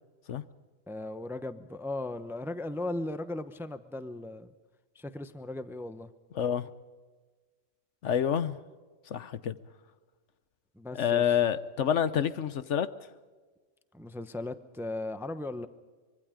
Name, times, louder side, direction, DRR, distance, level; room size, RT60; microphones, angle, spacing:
voice 1, 0.9-4.5 4.9-6.1 10.7-11.2 13.9-15.7, left 2 dB, ahead, 0.7 m, -37 dB
voice 2, 6.3-6.7 8.0-8.6 9.1-9.6 10.9-12.9, left 9 dB, 70° left, 1.1 m, -28 dB
24.5 x 23.0 x 5.1 m
omnidirectional pair, 1.3 m